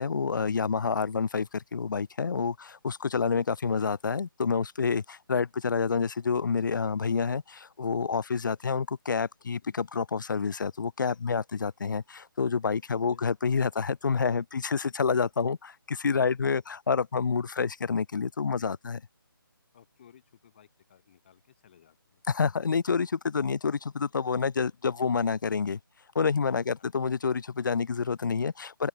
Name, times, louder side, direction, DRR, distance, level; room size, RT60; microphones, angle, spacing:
voice 1, 0.0-19.0 22.3-25.8 26.1-28.9, left 5 dB, 60° left, 0.5 m, -28 dB
voice 2, 19.7-22.2 26.5-26.9, left 9 dB, 30° left, 2.9 m, -58 dB
open air
hypercardioid pair, 170°, 12 cm